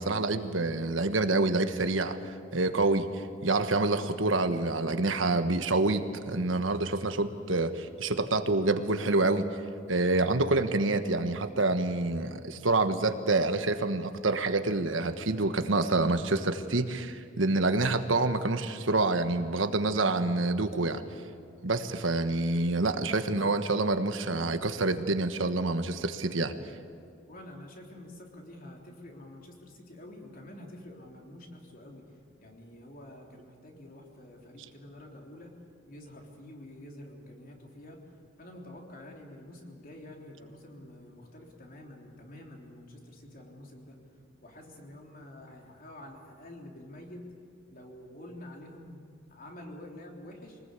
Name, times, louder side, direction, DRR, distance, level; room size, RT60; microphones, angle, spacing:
voice 1, 0.0-2.2 2.5-9.4 9.9-21.0 21.6-26.5, right 2 dB, 80° right, 8 dB, 1.4 m, -27 dB
voice 2, 27.3-32.0 32.4-35.5 35.9-38.0 38.4-44.0 44.4-47.2 47.7-50.6, left 1 dB, 45° left, 1 dB, 3.6 m, -48 dB
24.5 x 19.5 x 8.3 m, 2.4 s
head